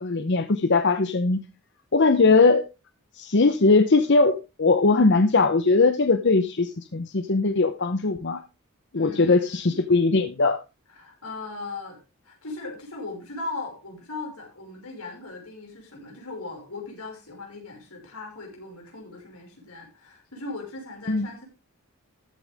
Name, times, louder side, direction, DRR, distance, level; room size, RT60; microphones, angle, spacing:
voice 1, 0.0-1.4 1.9-2.6 3.1-8.4 8.9-10.6 21.1-21.3, left 3 dB, 50° left, 9 dB, 0.8 m, -20 dB
voice 2, 8.9-9.8 10.9-21.4, left 3 dB, 85° left, 1 dB, 5.6 m, -38 dB
14.0 x 8.9 x 3.5 m, 0.28 s
head